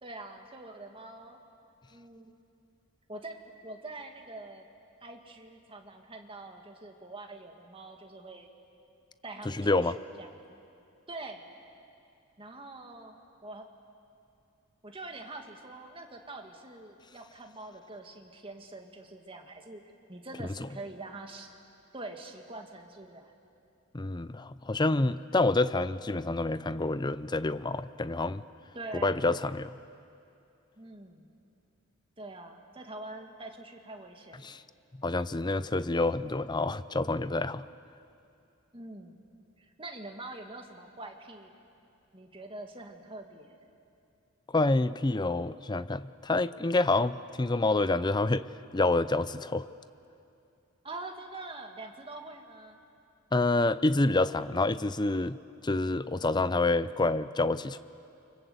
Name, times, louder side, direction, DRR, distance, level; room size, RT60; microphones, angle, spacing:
voice 1, 0.0-1.4 1.9-2.3 3.1-4.7 5.0-8.5 9.2-10.6 11.1-11.5 12.4-13.2 13.4-13.7 14.8-19.8 20.1-21.5 21.9-23.3 28.7-29.2 30.8-31.3 32.2-34.6 38.7-39.2 39.6-41.5 42.1-43.6 50.8-52.8, right 2 dB, 25° right, 3 dB, 2.2 m, -44 dB
voice 2, 9.5-10.0 20.4-20.7 23.9-28.4 29.0-29.8 34.4-34.6 35.0-37.6 44.5-48.4 48.7-49.7 53.3-55.4 55.6-57.8, left 2 dB, 20° left, 15 dB, 0.5 m, -27 dB
29.5 x 25.0 x 8.1 m, 2.6 s
head